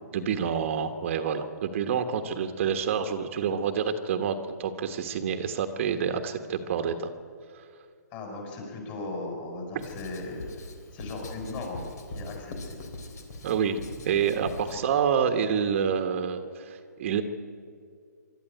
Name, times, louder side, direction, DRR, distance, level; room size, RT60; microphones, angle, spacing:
voice 1, 0.1-7.1 13.4-13.8 14.0-17.2, right 7 dB, 45° right, 7 dB, 1.3 m, -28 dB
voice 2, 8.1-10.5 10.9-12.8 14.7-14.8, left 2 dB, 30° left, 1 dB, 6.4 m, -37 dB
Writing, 9.8-14.8, left 2 dB, 65° left, 3.6 m, -41 dB
24.5 x 12.5 x 9.1 m, 2.3 s
hypercardioid pair, 150°, 10 cm